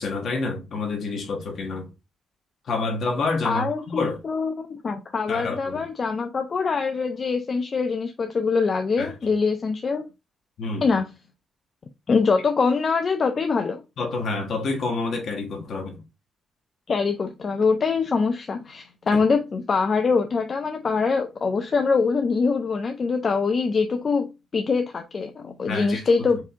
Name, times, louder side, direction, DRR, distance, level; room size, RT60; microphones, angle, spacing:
voice 1, 0.0-1.9 2.7-4.2 5.3-5.8 9.0-9.1 10.6-10.8 14.0-16.0 19.1-19.2 25.7-26.0, left 3 dB, 60° left, 1.3 m, -28 dB
voice 2, 3.4-10.1 10.8-11.1 12.1-13.8 16.9-26.4, left 4 dB, 40° left, 0.5 m, -24 dB
4.7 x 2.7 x 3.4 m
cardioid pair, 105°, 0 cm